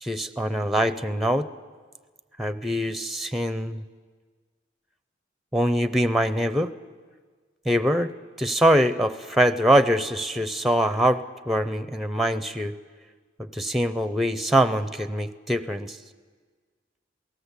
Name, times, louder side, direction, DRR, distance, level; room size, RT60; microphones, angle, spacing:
voice 1, 0.0-1.5 2.4-3.8 5.5-6.7 7.7-8.1 8.4-12.7 13.4-16.0, equal, ahead, 12 dB, 0.6 m, -23 dB
28.0 x 18.0 x 8.3 m, 1.5 s
head